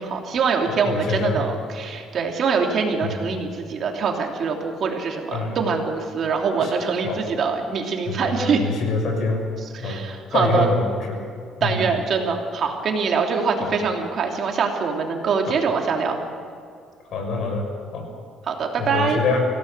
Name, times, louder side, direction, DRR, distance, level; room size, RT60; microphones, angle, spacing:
voice 1, 0.0-8.6 9.8-10.7 11.6-16.2 18.4-19.2, right 5 dB, 45° right, 2 dB, 3.0 m, -24 dB
voice 2, 0.7-1.4 3.0-3.2 5.3-5.6 6.6-6.7 7.0-7.2 8.1-9.4 9.8-10.0 10.3-11.3 11.6-11.8 13.6-13.7 15.5-15.6 17.1-17.6 17.9-18.1 18.8-19.5, left 3 dB, 55° left, 3 dB, 6.0 m, -25 dB
25.5 x 16.5 x 6.8 m, 2.3 s
cardioid pair, 135°, 0 cm